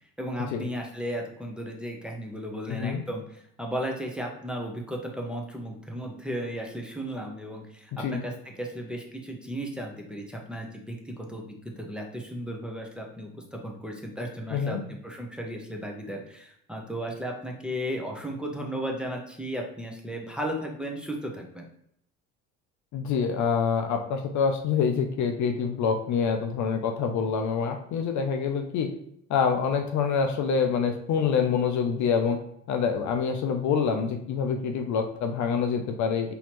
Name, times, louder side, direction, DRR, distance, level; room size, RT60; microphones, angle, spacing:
voice 1, 0.2-14.8 15.0-21.7, equal, ahead, 0 dB, 0.8 m, -35 dB
voice 2, 2.7-3.0 7.9-8.2 14.5-14.8 22.9-28.9 29.3-32.4 32.7-36.3, left 6 dB, 50° left, 5 dB, 0.6 m, -26 dB
4.1 x 2.9 x 3.0 m, 0.73 s
hypercardioid pair, 70°, 38 cm